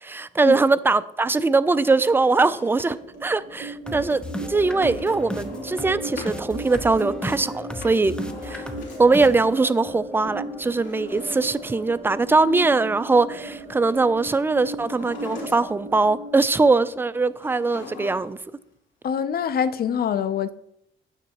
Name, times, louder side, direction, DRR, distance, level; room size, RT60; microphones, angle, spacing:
voice 1, 0.0-4.2 4.5-8.1 8.4-8.7 9.0-18.4, right 3 dB, 10° right, 0.3 m, -21 dB
Drawer open or close, 1.7-3.2 4.9-6.4 7.6-9.3 10.6-12.3 14.7-15.9 17.4-18.5 18.7-18.8, left 5 dB, 65° left, 2.7 m, -42 dB
sound 1, 2.8-17.7, right 2 dB, 55° right, 1.5 m, -37 dB
sound 2, 3.8-11.8, left 1 dB, 5° left, 0.9 m, -36 dB
voice 2, 19.0-20.5, left 8 dB, 50° left, 0.6 m, -24 dB
8.9 x 8.0 x 2.9 m
cardioid pair, 90°, 20 cm